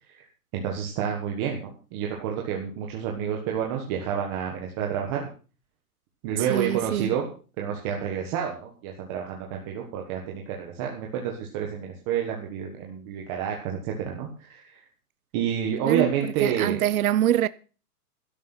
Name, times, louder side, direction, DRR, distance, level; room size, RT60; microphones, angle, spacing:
voice 1, 0.5-5.3 6.2-7.3 7.6-14.8 15.3-16.8, right 8 dB, 15° right, 1.4 m, -29 dB
voice 2, 6.5-7.1 15.9-16.1 16.4-17.5, right 12 dB, 65° right, 0.7 m, -24 dB
12.0 x 11.5 x 5.9 m
hypercardioid pair, 175°, 46 cm